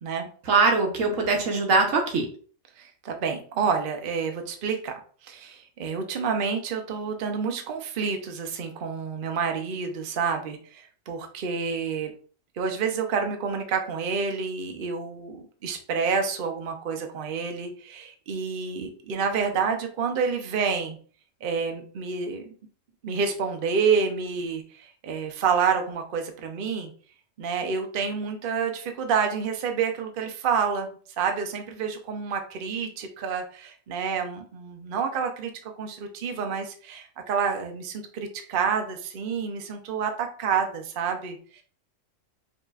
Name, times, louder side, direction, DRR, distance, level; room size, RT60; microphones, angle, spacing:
voice 1, 0.5-2.3, right 4 dB, 85° right, 2 dB, 1.3 m, -22 dB
voice 2, 2.8-12.1 12.6-21.0 21.4-22.5 23.0-26.9 27.4-30.9 31.2-41.6, right 6 dB, 50° right, 4 dB, 0.7 m, -28 dB
5.0 x 2.9 x 2.4 m, 0.43 s
omnidirectional pair, 1.3 m